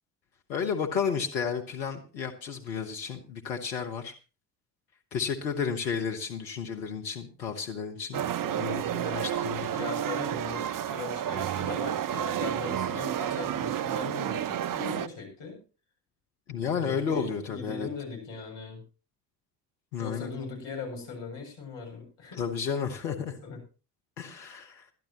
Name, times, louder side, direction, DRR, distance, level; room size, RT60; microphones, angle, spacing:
voice 1, 0.5-4.1 5.1-9.9 16.5-17.9 19.9-20.3 22.4-23.4 24.2-24.9, left 6 dB, 85° left, 4 dB, 1.4 m, -32 dB
sound 1, 8.1-15.1, right 10 dB, 40° right, 0.9 m, -31 dB
voice 2, 9.6-15.6 16.6-18.8 20.0-22.4 23.2-23.6, left 5 dB, 60° left, 2 dB, 7.5 m, -40 dB
21.5 x 12.0 x 3.0 m, 0.34 s
hypercardioid pair, 55°, 49 cm